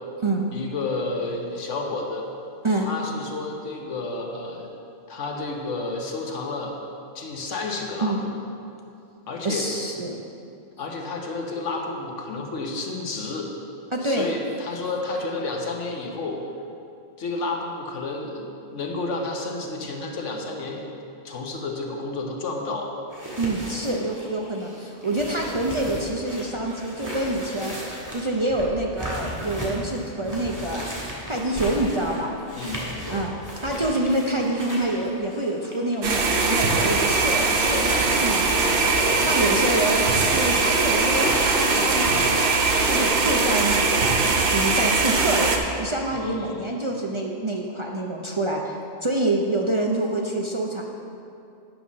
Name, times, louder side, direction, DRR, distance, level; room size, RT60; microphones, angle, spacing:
voice 1, 0.5-2.3 2.9-4.7 5.1-6.7 7.1-8.3 9.3-9.7 10.8-13.5 14.0-16.4 17.2-20.8 21.2-22.9 32.5-32.9 39.1-39.6 46.1-46.7, left 3 dB, 85° left, 1 dB, 1.4 m, -31 dB
voice 2, 9.4-10.2 13.9-14.3 23.4-30.9 31.3-32.4 33.1-33.3 33.6-40.0 40.3-42.5 42.8-45.5 45.8-50.8, right 1 dB, 35° right, -1 dB, 0.5 m, -26 dB
sound 1, 23.1-39.2 39.8-40.0 40.4-43.1, equal, 15° right, 1.5 m, -36 dB
sound 2, 36.0-45.6, right 3 dB, 55° right, 0.9 m, -21 dB
8.8 x 5.6 x 6.2 m, 2.6 s
omnidirectional pair, 1.2 m